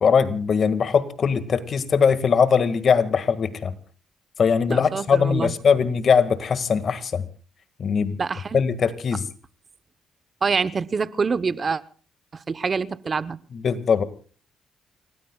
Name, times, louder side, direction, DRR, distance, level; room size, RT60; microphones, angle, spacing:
voice 1, 0.0-3.7 4.4-7.3 7.8-8.2 8.5-9.3 13.5-14.0, left 6 dB, 50° left, 1.7 m, -21 dB
voice 2, 4.7-5.5 8.2-8.6 10.4-11.8 12.3-13.4, right 5 dB, 35° right, 0.8 m, -26 dB
29.5 x 17.5 x 2.3 m
cardioid pair, 90°, 0 cm